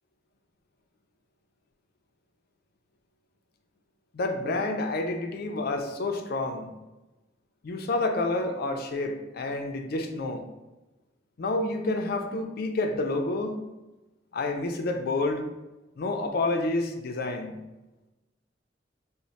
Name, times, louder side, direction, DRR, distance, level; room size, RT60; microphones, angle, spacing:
voice 1, 4.1-6.7 7.6-10.4 11.4-13.6 14.3-15.4 16.0-17.6, left 2 dB, 55° left, 5 dB, 0.4 m, -29 dB
3.0 x 2.1 x 4.0 m, 1.1 s
head